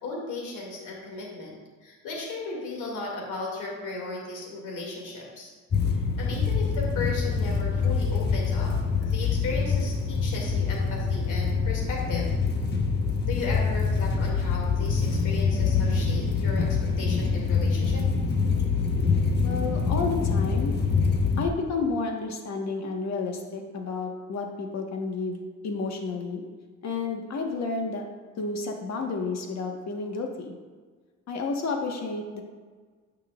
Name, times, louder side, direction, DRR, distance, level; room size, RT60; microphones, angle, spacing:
voice 1, 0.0-5.5 6.2-8.7 9.0-12.3 13.3-18.0, left 3 dB, 85° left, -2 dB, 2.5 m, -36 dB
sound 1, 5.7-21.5, left 5 dB, 35° left, 1.1 m, -25 dB
voice 2, 19.4-20.7 21.4-26.4 26.8-28.0 28.4-30.5 31.3-32.4, left 4 dB, 60° left, 2 dB, 1.4 m, -31 dB
13.0 x 5.7 x 2.5 m, 1.5 s
cardioid pair, 90°, 30 cm